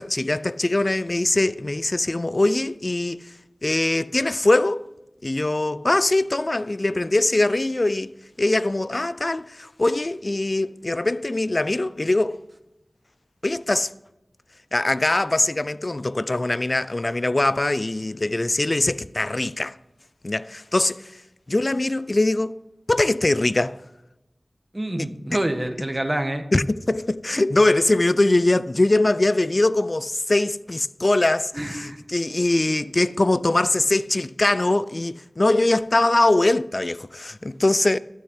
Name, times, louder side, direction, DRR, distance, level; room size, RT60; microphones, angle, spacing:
voice 1, 0.0-3.3 3.6-4.8 5.2-8.1 8.4-12.4 13.4-13.9 14.7-19.7 20.2-21.1 21.5-22.6 22.9-23.7 26.5-38.0, left 2 dB, 45° left, 0.5 m, -22 dB
voice 2, 24.7-26.4 31.5-32.0, right 1 dB, 30° right, 1.4 m, -27 dB
12.5 x 6.5 x 8.3 m
wide cardioid pair, 55°, 0 cm